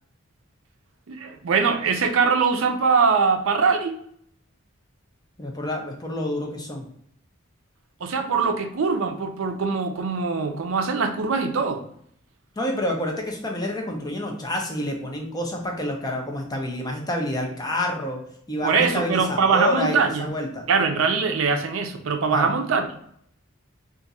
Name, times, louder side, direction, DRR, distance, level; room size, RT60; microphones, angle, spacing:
voice 1, 1.1-4.0 8.0-11.8 18.6-20.3 20.7-22.9, right 5 dB, 70° right, 6 dB, 0.5 m, -22 dB
voice 2, 5.4-6.9 12.6-18.2 18.5-20.6 22.3-22.5, left 1 dB, 20° left, 1 dB, 0.6 m, -28 dB
2.5 x 2.5 x 4.0 m, 0.66 s
head